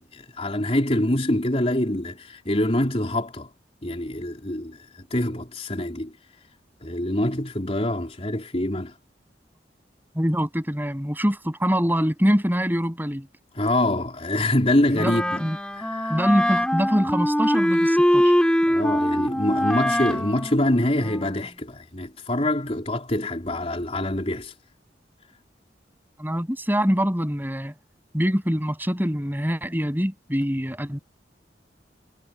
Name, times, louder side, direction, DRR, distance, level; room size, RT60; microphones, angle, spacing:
voice 1, 0.0-3.5 3.8-6.1 6.8-8.9 13.5-15.4 15.8-16.2 18.7-24.5, left 1 dB, 35° left, 3.7 m, -25 dB
voice 2, 10.1-13.3 15.0-15.1 15.4-15.6 16.1-18.3 26.2-27.7 28.1-31.0, equal, 10° right, 7.9 m, -24 dB
Wind instrument woodwind instrument, 14.9-21.5, equal, 5° left, 4.0 m, -23 dB
head